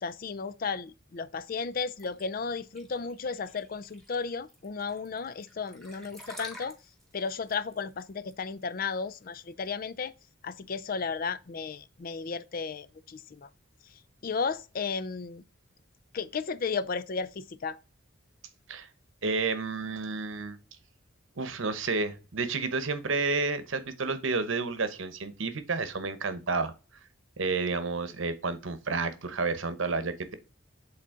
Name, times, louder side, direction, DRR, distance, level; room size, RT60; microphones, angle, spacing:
voice 1, 0.0-6.8 7.1-10.1 10.4-13.5 14.2-15.4 16.1-17.8, left 5 dB, 45° left, 0.4 m, -34 dB
sound 1, 2.0-9.7, equal, ahead, 2.0 m, -49 dB
voice 2, 19.2-20.6 21.4-26.7 27.4-30.3, right 4 dB, 75° right, 0.9 m, -30 dB
7.8 x 4.0 x 3.7 m
head